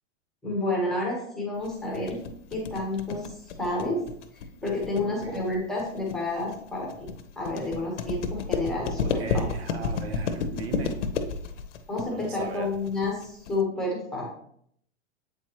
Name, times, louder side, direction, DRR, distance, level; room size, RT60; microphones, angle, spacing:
voice 1, 0.4-2.2 2.5-4.0 4.6-7.1 7.4-9.0 9.3-9.4 11.9-14.2, left 2 dB, ahead, -3 dB, 1.0 m, -30 dB
sound 1, 1.6-13.6, left 5 dB, 75° left, 0.9 m, -31 dB
voice 2, 4.9-5.5 9.0-11.0 12.1-12.8, right 6 dB, 60° right, 7 dB, 0.9 m, -38 dB
8.1 x 4.6 x 2.9 m, 0.68 s
supercardioid pair, 170°, 36 cm